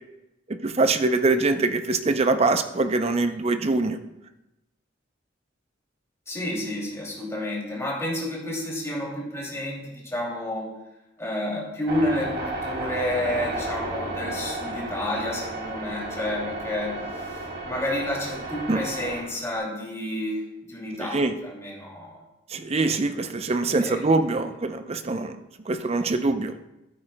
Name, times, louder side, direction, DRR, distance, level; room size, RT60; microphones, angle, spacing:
voice 1, 0.5-4.0 18.7-18.8 21.1-21.3 22.5-25.4 25.7-26.5, right 3 dB, 35° right, 9 dB, 0.5 m, -23 dB
voice 2, 6.3-10.7 11.2-16.9 17.3-22.2 23.7-24.2, left 1 dB, 15° left, -3 dB, 2.7 m, -30 dB
sound 1, 11.9-19.6, right 2 dB, 55° right, 1.7 m, -33 dB
14.0 x 8.6 x 2.2 m, 0.93 s
head